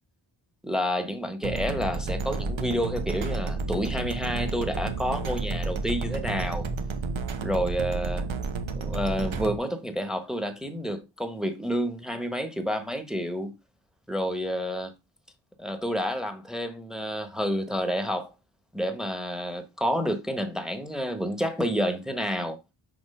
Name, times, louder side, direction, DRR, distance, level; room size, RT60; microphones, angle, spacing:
voice 1, 0.6-6.7 7.4-8.2 8.7-13.6 14.1-14.9 15.6-18.3 18.7-22.6, equal, ahead, 1.1 m, -29 dB
sound 1, 1.4-9.6, right 4 dB, 70° right, 1.0 m, -31 dB
6.1 x 2.9 x 5.4 m
wide cardioid pair, 75°, 48 cm